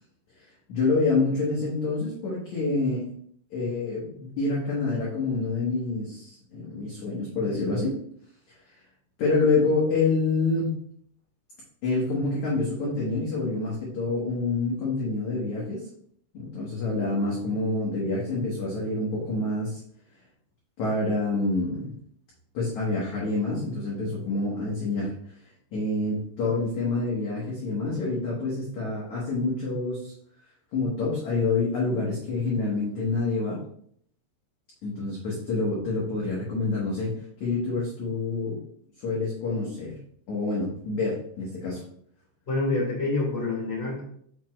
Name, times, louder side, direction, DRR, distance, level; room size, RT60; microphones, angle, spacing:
voice 1, 0.7-3.1 3.5-8.0 8.5-8.6 9.2-10.8 11.8-15.8 16.3-19.8 20.8-21.9 22.5-25.1 25.7-30.1 30.7-33.6 34.8-37.1 37.4-38.6 39.0-40.0 40.3-41.8, left 3 dB, 65° left, -5 dB, 1.9 m, -27 dB
voice 2, 42.5-44.0, left 2 dB, 20° left, -4 dB, 2.1 m, -27 dB
7.1 x 6.0 x 3.2 m, 0.64 s
omnidirectional pair, 5.6 m